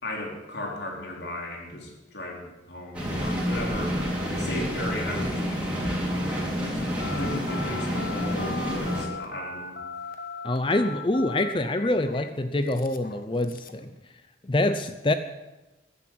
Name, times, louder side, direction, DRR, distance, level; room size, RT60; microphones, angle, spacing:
voice 1, 0.0-4.0 4.4-9.8, left 1 dB, 65° left, -1 dB, 4.1 m, -36 dB
sound 1, 2.9-9.0, equal, 5° right, 4.0 m, -29 dB
Telephone, 7.0-13.9, left 4 dB, 50° left, 1.2 m, -38 dB
voice 2, 10.4-13.8 14.4-15.1, left 1 dB, 25° left, 10 dB, 0.6 m, -25 dB
14.5 x 11.0 x 7.8 m, 1.1 s
head